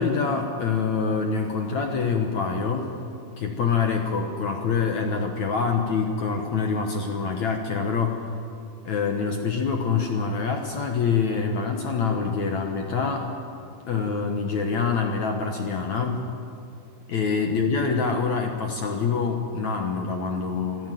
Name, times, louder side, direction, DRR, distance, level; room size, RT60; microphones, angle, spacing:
voice 1, 0.0-3.0 3.4-8.2 8.9-13.3 13.9-16.3 17.1-20.9, left 5 dB, 60° left, 3 dB, 2.0 m, -25 dB
26.5 x 14.5 x 9.2 m, 2.5 s
omnidirectional pair, 4.8 m